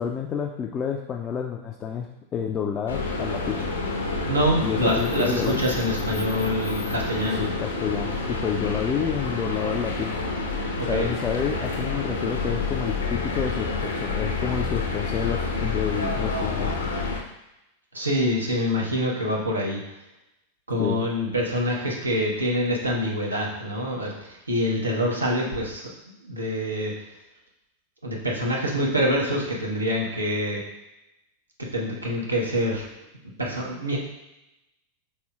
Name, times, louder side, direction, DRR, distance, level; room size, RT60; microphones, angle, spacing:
voice 1, 0.0-3.7 4.6-5.6 7.4-10.2 10.8-16.8 20.8-21.0, left 7 dB, 25° left, 1 dB, 0.4 m, -29 dB
sound 1, 2.9-17.2, left 3 dB, 70° left, 0.6 m, -28 dB
voice 2, 4.2-7.4 10.8-11.1 17.9-19.8 20.7-25.9 26.2-26.9 28.0-30.6 31.7-32.8 33.4-34.0, equal, 80° right, -2 dB, 0.9 m, -26 dB
5.4 x 4.2 x 2.3 m, 0.91 s
figure-of-eight pair, 90°, 0 cm